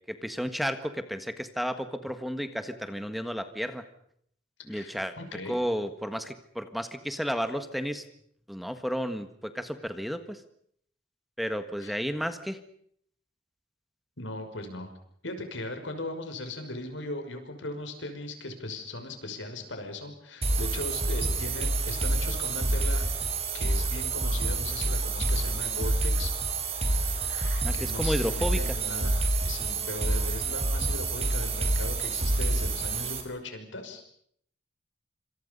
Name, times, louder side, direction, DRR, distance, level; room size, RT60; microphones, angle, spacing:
voice 1, 0.1-3.8 4.7-5.1 5.5-8.0 8.5-10.4 11.4-12.6 27.6-28.6, equal, ahead, 9 dB, 1.5 m, -32 dB
voice 2, 4.7-5.5 11.8-11.9 14.2-14.9 15.2-23.0 23.5-26.3 27.0-34.1, left 2 dB, 85° left, 6 dB, 5.9 m, -38 dB
sound 1, 20.4-33.2, right 2 dB, 35° right, 4.7 m, -28 dB
27.5 x 26.5 x 5.5 m, 0.65 s
head